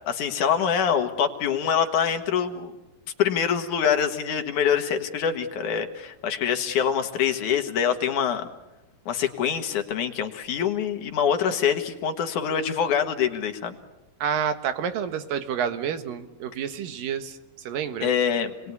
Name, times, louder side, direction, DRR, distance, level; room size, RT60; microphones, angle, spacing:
voice 1, 0.1-2.7 3.2-8.5 9.1-13.8 18.0-18.7, left 8 dB, 65° left, 6 dB, 3.0 m, -25 dB
voice 2, 14.2-18.1, right 8 dB, 85° right, 9 dB, 3.2 m, -29 dB
29.0 x 20.5 x 9.7 m, 1.0 s
omnidirectional pair, 3.9 m